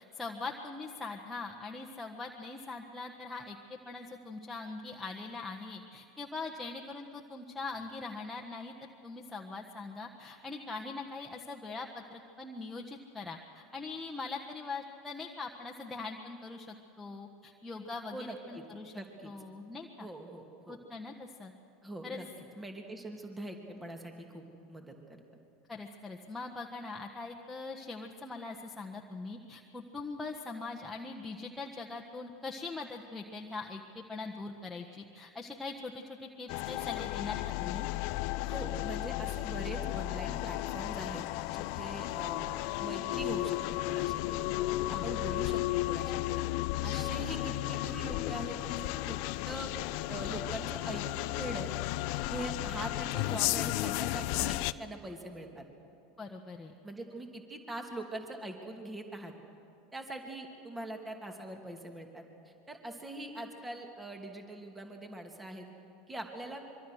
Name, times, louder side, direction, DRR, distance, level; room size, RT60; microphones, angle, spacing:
voice 1, 0.0-8.7 9.0-18.9 19.2-20.1 20.7-21.5 22.0-22.2 25.7-37.9 44.9-45.1 56.2-56.7, left 3 dB, 10° left, 0 dB, 1.4 m, -42 dB
voice 2, 18.1-18.6 18.9-19.3 20.0-20.8 21.8-22.3 22.6-24.4 24.7-25.2 38.4-43.6 43.8-44.5 44.9-46.5 46.8-49.2 49.5-49.7 50.1-51.7 52.3-55.6 56.8-59.3 59.9-62.2 62.7-65.7 66.1-66.6, right 1 dB, 15° right, 3 dB, 2.7 m, -42 dB
sound 1, 36.5-54.7, left 18 dB, 55° left, 0.5 m, -34 dB
25.0 x 24.0 x 6.4 m, 2.6 s
figure-of-eight pair, 80°, 0 cm